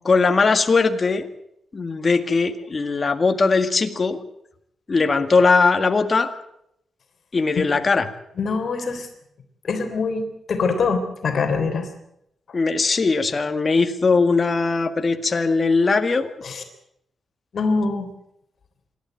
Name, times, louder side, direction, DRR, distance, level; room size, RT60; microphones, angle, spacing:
voice 1, 0.0-1.3 1.7-4.2 4.9-6.3 7.3-8.1 12.5-16.4, left 4 dB, 30° left, 7 dB, 1.8 m, -19 dB
voice 2, 8.4-9.1 9.6-11.9 16.4-16.6 17.5-18.1, left 4 dB, 50° left, 6 dB, 3.5 m, -24 dB
26.5 x 12.5 x 9.2 m, 0.77 s
wide cardioid pair, 135°, 0 cm